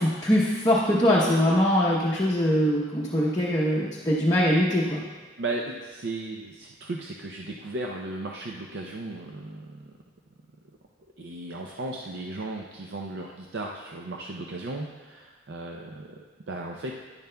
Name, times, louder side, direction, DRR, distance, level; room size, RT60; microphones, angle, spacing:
voice 1, 0.2-5.0, equal, 20° left, -5 dB, 0.8 m, -22 dB
voice 2, 5.4-9.9 11.2-17.0, right 2 dB, 70° right, 0 dB, 0.5 m, -36 dB
10.5 x 10.5 x 2.2 m, 1.4 s
head